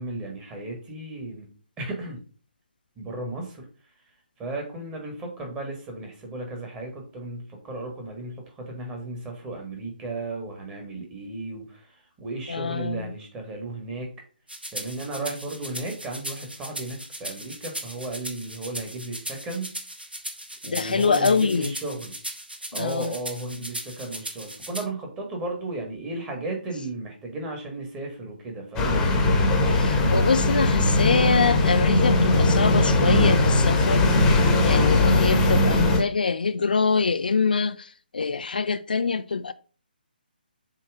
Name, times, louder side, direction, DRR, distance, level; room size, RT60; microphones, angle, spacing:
voice 1, 0.0-1.5 1.8-2.2 3.0-3.6 4.4-11.9 12.2-14.1 14.7-19.8 20.6-22.1 22.7-29.1, right 2 dB, 15° right, 1.6 m, -34 dB
voice 2, 12.5-13.1 20.7-21.7 22.7-23.1 29.7-34.0 34.6-39.5, left 5 dB, 60° left, 0.4 m, -24 dB
sound 1, 14.5-24.8, right 1 dB, 80° right, 1.6 m, -37 dB
sound 2, 28.8-36.0, left 2 dB, 10° left, 1.1 m, -20 dB
7.4 x 3.0 x 4.9 m
figure-of-eight pair, 140°, 5 cm